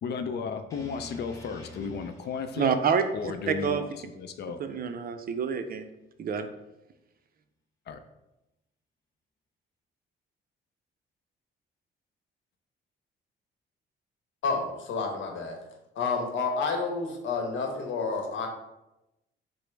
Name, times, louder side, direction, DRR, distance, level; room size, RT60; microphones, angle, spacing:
voice 1, 0.0-2.8 3.1-4.6 7.9-8.0, left 5 dB, 55° left, 9 dB, 0.4 m, -34 dB
sound 1, 0.7-4.8, left 1 dB, 15° left, 0.9 m, -49 dB
voice 2, 2.6-3.0 3.5-3.8 4.6-5.9 6.2-6.5, right 7 dB, 50° right, 8 dB, 0.5 m, -27 dB
voice 3, 14.4-15.6 16.0-18.5, left 4 dB, 75° left, 3 dB, 0.9 m, -30 dB
4.9 x 2.0 x 4.5 m, 0.95 s
cardioid pair, 90°, 20 cm